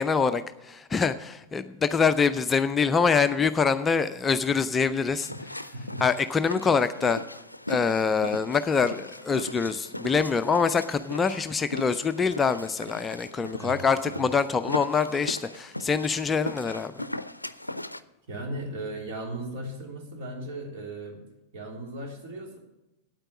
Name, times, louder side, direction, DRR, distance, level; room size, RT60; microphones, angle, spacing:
voice 1, 0.0-5.3 6.0-7.2 7.7-16.9, left 5 dB, 15° left, 10 dB, 0.4 m, -25 dB
sound 1, 5.1-18.0, left 1 dB, 85° left, 0.4 m, -38 dB
voice 2, 5.7-6.0 13.6-13.8 14.1-14.3 18.3-21.2 21.5-22.6, right 1 dB, 50° right, 1 dB, 3.2 m, -37 dB
9.0 x 8.8 x 7.3 m, 0.98 s
figure-of-eight pair, 90°, 0 cm